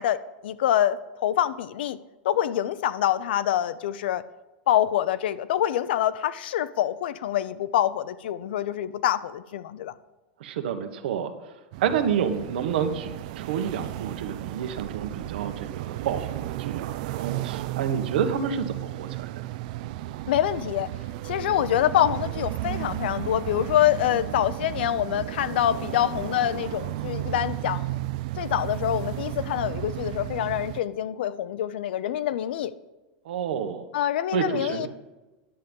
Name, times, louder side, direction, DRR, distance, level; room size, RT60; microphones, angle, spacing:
voice 1, 0.0-2.0 2.2-4.2 4.7-9.9 20.3-20.9 21.2-28.0 28.4-32.7 33.9-34.9, left 11 dB, 80° left, 16 dB, 0.6 m, -25 dB
voice 2, 10.4-11.3 11.8-19.3 33.2-33.8 34.3-34.9, right 8 dB, 75° right, 7 dB, 1.3 m, -29 dB
sound 1, 11.7-30.8, right 15 dB, 50° right, 0.4 m, -34 dB
10.5 x 7.7 x 5.3 m, 1.1 s
supercardioid pair, 175°, 5 cm